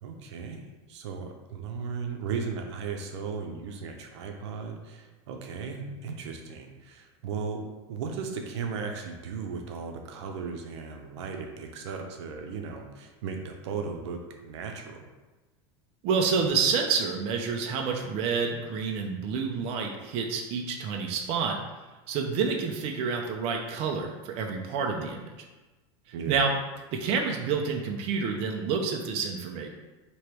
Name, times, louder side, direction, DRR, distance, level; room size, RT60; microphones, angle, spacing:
voice 1, 0.0-15.1 26.1-26.4, right 5 dB, 80° right, 3 dB, 0.7 m, -36 dB
voice 2, 16.0-21.6 22.1-25.5 26.3-26.5 26.9-29.7, right 5 dB, 45° right, 2 dB, 0.5 m, -28 dB
3.2 x 3.0 x 4.5 m, 1.2 s
supercardioid pair, 145°, 14 cm